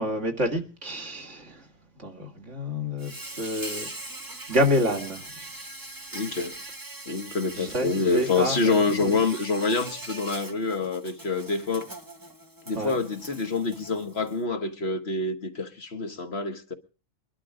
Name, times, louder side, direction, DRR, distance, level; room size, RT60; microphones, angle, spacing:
voice 1, 0.0-1.7 2.0-3.9 4.5-5.2 7.6-9.1 12.7-12.9, equal, 65° right, 2.8 m, -28 dB
Insect, 3.0-14.4, right 2 dB, 15° right, 1.1 m, -41 dB
voice 2, 6.1-6.6 7.1-11.9 12.7-16.7, left 4 dB, 50° left, 1.6 m, -27 dB
22.5 x 11.5 x 5.0 m
omnidirectional pair, 1.4 m